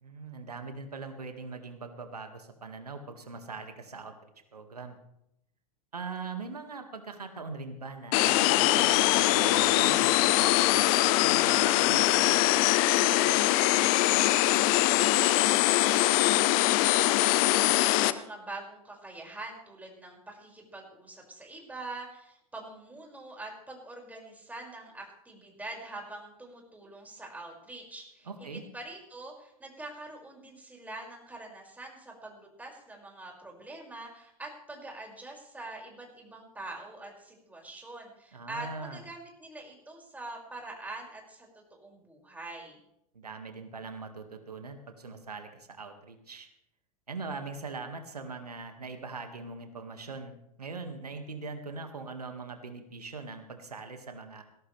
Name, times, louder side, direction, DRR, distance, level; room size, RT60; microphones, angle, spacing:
voice 1, 0.0-4.1 4.5-5.0 5.9-13.3 28.3-28.6 38.3-39.0 43.1-46.5 47.1-54.4, right 4 dB, 90° right, 6 dB, 2.0 m, -41 dB
sound 1, 8.1-18.1, left 16 dB, 50° left, 0.9 m, -23 dB
voice 2, 14.7-42.8, right 2 dB, 10° right, -1 dB, 6.0 m, -44 dB
20.0 x 17.0 x 3.4 m, 0.80 s
hypercardioid pair, 95°, 19 cm